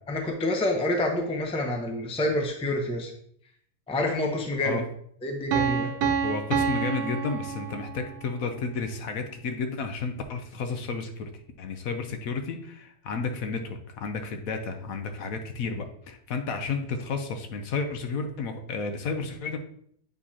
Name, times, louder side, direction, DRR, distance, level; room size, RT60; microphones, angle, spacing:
voice 1, 0.1-3.1 3.9-4.8 5.2-5.9, left 1 dB, 5° left, 2 dB, 0.6 m, -27 dB
Piano, 5.5-8.3, right 6 dB, 90° right, 1.2 m, -28 dB
voice 2, 6.2-11.3 11.6-19.6, left 4 dB, 65° left, 6 dB, 1.2 m, -32 dB
8.0 x 4.8 x 2.8 m, 0.65 s
omnidirectional pair, 1.6 m